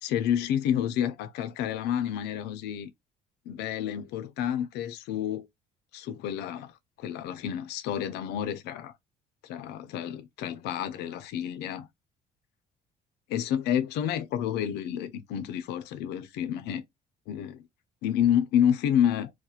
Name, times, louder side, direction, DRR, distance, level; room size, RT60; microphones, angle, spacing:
voice 1, 0.0-2.9 3.5-5.5 5.9-8.9 9.4-11.9 13.3-16.8 17.3-17.7 18.0-19.3, left 9 dB, 80° left, 0.4 m, -29 dB
2.4 x 2.1 x 2.7 m
cardioid pair, 110°, 17 cm